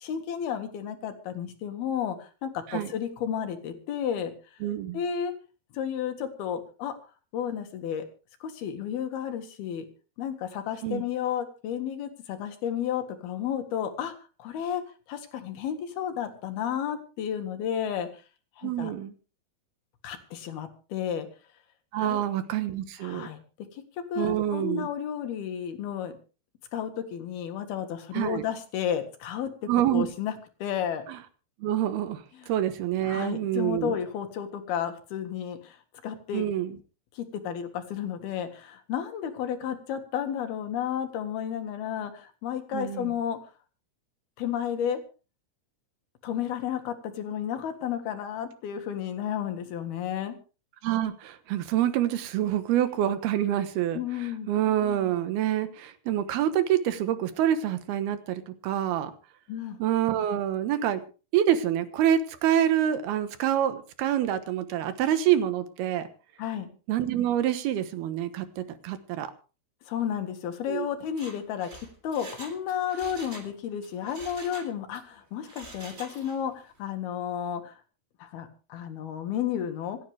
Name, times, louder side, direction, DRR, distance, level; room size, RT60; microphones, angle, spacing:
voice 1, 0.0-4.3 4.9-5.3 5.7-6.9 7.3-8.1 8.4-9.9 10.2-14.1 14.4-14.8 15.1-18.1 18.6-18.9 20.0-21.3 22.0-22.2 23.0-23.4 23.7-23.8 24.1-26.1 26.7-30.3 30.6-31.0 32.4-32.5 33.1-35.8 36.0-36.5 37.1-43.4 44.4-45.0 46.2-50.4 53.9-54.5 59.5-59.8 66.4-66.7 69.9-71.7 72.0-77.8 78.2-80.0, left 9 dB, 85° left, 7 dB, 3.7 m, -32 dB
voice 2, 4.6-5.0 10.8-11.0 18.6-19.1 21.9-23.3 24.2-24.9 28.1-28.4 29.7-30.1 31.1-31.2 31.6-34.0 36.3-36.7 42.7-43.1 50.8-54.0 54.5-59.1 59.8-61.0 61.3-66.1 66.9-69.3 70.7-70.9, right 11 dB, 85° right, 10 dB, 3.2 m, -26 dB
Mechanisms, 71.0-73.5 73.8-75.0 75.4-76.5 76.8-76.9, right 2 dB, 20° right, 3.1 m, -46 dB
27.0 x 9.5 x 3.4 m, 0.35 s
omnidirectional pair, 4.3 m